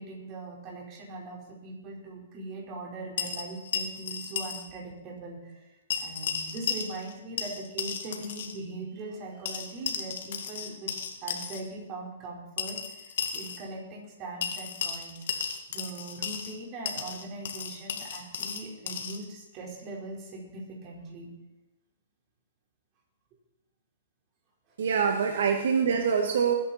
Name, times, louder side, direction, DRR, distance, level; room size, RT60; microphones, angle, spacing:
voice 1, 0.0-5.7 6.0-10.9 11.2-15.2 15.7-21.3 24.7-24.8, right 2 dB, 30° right, -2 dB, 4.7 m, -40 dB
sound 1, 3.2-4.6 4.9-5.0 5.9-7.1 7.4-8.6 9.4-11.6 12.6-13.6 14.4-16.5 16.8-19.2, left 7 dB, 65° left, 2.1 m, -34 dB
voice 2, 24.8-26.5, right 6 dB, 70° right, 3 dB, 1.8 m, -25 dB
20.5 x 10.0 x 4.4 m, 0.96 s
hypercardioid pair, 150°, 0 cm